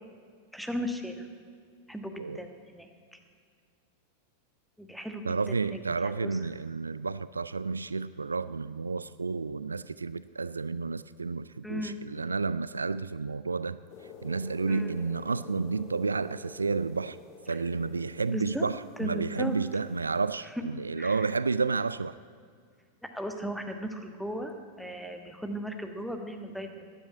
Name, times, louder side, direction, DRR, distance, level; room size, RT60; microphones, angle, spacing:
voice 1, 0.5-1.3 1.9-3.2 4.8-6.4 11.6-12.0 14.7-14.9 18.3-18.7 19.0-19.6 21.0-21.3 23.0-26.9, equal, ahead, 5 dB, 1.4 m, -37 dB
voice 2, 5.2-13.8 14.2-17.2 17.5-22.1, right 4 dB, 75° right, 16 dB, 0.3 m, -31 dB
sound 1, 13.9-20.3, left 5 dB, 40° left, 1.9 m, -50 dB
14.0 x 10.5 x 8.5 m, 2.1 s
figure-of-eight pair, 90°, 0 cm